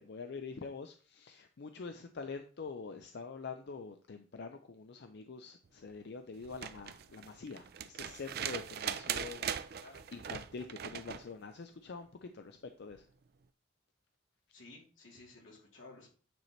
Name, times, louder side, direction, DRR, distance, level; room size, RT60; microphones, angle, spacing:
voice 1, 0.0-13.1, left 4 dB, 60° left, 6 dB, 0.5 m, -45 dB
sound 1, 6.4-11.3 12.9-13.0, right 8 dB, 55° right, 0.4 m, -40 dB
voice 2, 14.5-16.1, left 2 dB, 90° left, -3 dB, 3.0 m, -54 dB
9.1 x 4.3 x 3.1 m, 0.39 s
head